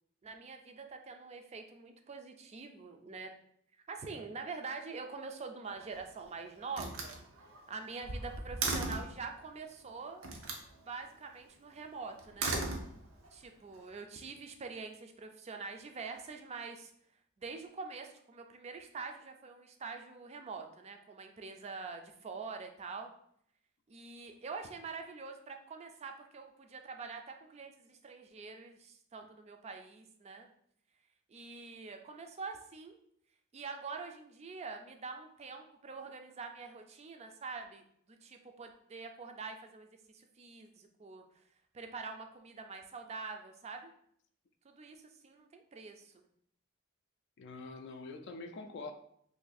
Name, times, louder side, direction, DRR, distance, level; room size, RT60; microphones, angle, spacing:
voice 1, 0.2-3.3 3.9-7.2 7.7-10.2 10.8-12.6 13.3-16.9 17.4-23.1 23.9-30.5 31.3-33.0 33.5-39.9 40.1-41.2 41.7-43.9 44.6-46.2, right 4 dB, 30° right, 5 dB, 0.4 m, -45 dB
Slam, 5.6-6.2 6.7-9.2 10.2-10.7 12.2-13.3, right 3 dB, 80° right, 0.6 m, -37 dB
voice 2, 47.4-48.9, left 3 dB, 60° left, 6 dB, 0.4 m, -45 dB
2.7 x 2.6 x 3.9 m, 0.68 s
head